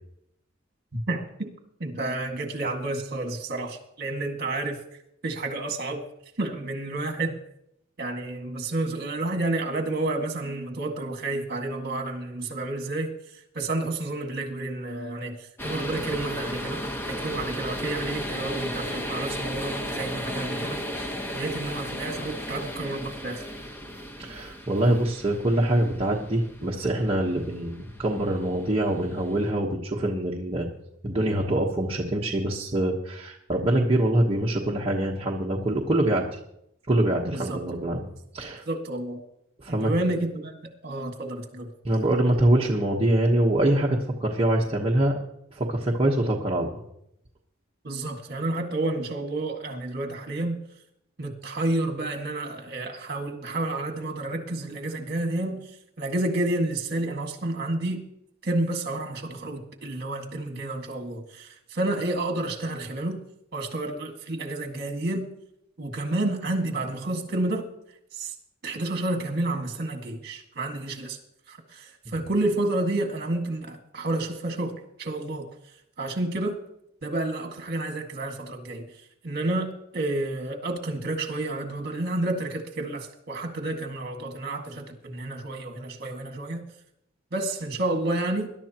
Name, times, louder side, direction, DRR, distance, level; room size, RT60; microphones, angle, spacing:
voice 1, 0.9-1.5 1.8-4.8 5.2-6.0 6.4-7.4 8.0-21.1 21.3-23.4 37.3-37.6 38.7-39.2 39.7-40.6 40.8-41.7 47.8-50.6 51.2-58.1 58.4-63.2 63.5-65.3 65.8-67.7 68.1-68.3 68.6-71.2 71.5-75.5 76.0-76.6 77.0-78.8 79.2-86.7 87.3-88.5, right 2 dB, 50° right, 4 dB, 1.9 m, -30 dB
sound 1, 15.6-29.5, equal, 10° left, 1.1 m, -35 dB
voice 2, 24.2-30.7 31.0-36.4 36.9-38.1 38.3-38.6 39.6-39.9 41.8-45.2 45.5-46.8, right 1 dB, 25° right, -2 dB, 1.1 m, -24 dB
21.0 x 11.5 x 2.9 m, 0.77 s
head